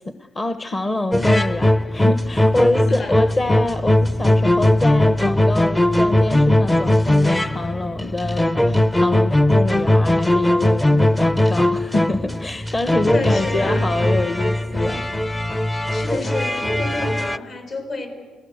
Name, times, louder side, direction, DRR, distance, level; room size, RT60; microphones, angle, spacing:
voice 1, 0.0-15.0, left 2 dB, 30° left, 9 dB, 1.2 m, -26 dB
sound 1, 1.1-17.4, left 1 dB, 10° left, 0.7 m, -19 dB
voice 2, 13.0-13.9 15.9-18.1, left 3 dB, 55° left, 5 dB, 6.4 m, -29 dB
29.0 x 18.0 x 8.2 m, 1.5 s
cardioid pair, 90°, 0 cm